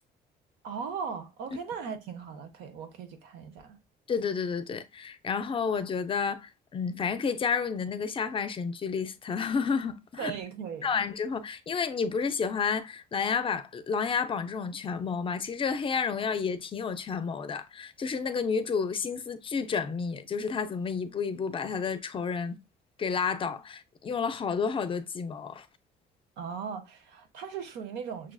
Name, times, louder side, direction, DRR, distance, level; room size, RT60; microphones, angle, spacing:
voice 1, 0.6-3.8 10.2-11.0 26.4-28.3, right 6 dB, 90° right, 0.8 m, -38 dB
voice 2, 4.1-10.3 10.8-22.6 23.0-25.7, left 5 dB, 30° left, 0.5 m, -30 dB
6.1 x 2.4 x 2.3 m
cardioid pair, 110°, 17 cm